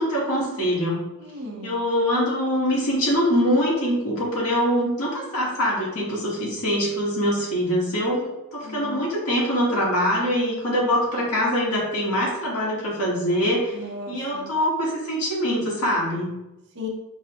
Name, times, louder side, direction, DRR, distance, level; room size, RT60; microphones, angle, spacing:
voice 1, 0.0-1.1 1.6-8.3 8.5-13.7 14.1-16.3, equal, 90° left, -5 dB, 1.2 m, -23 dB
voice 2, 1.2-1.8 8.6-9.0 13.7-14.6 16.7-16.9, left 2 dB, 55° right, -1 dB, 0.8 m, -36 dB
5.2 x 2.1 x 2.9 m, 0.95 s
head